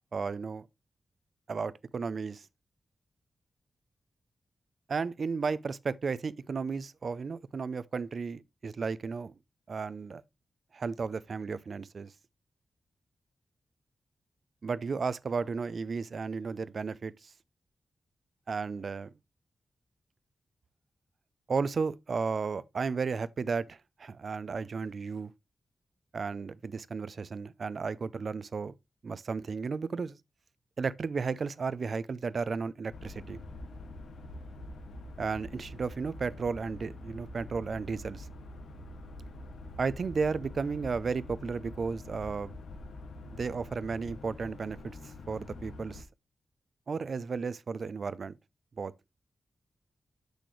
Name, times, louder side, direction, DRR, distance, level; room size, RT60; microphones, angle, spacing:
voice 1, 0.1-0.7 1.5-2.5 4.9-9.3 9.7-10.2 10.7-12.1 14.6-17.3 18.5-19.1 21.5-25.3 26.1-28.7 29.0-30.2 30.8-33.4 35.2-38.3 39.8-42.5 43.4-46.0 46.9-48.3 48.8-48.9, right 5 dB, 65° right, 0.4 m, -34 dB
sound 1, 32.9-46.0, left 1 dB, 80° left, 0.8 m, -45 dB
6.5 x 6.2 x 3.1 m
supercardioid pair, 40°, 0 cm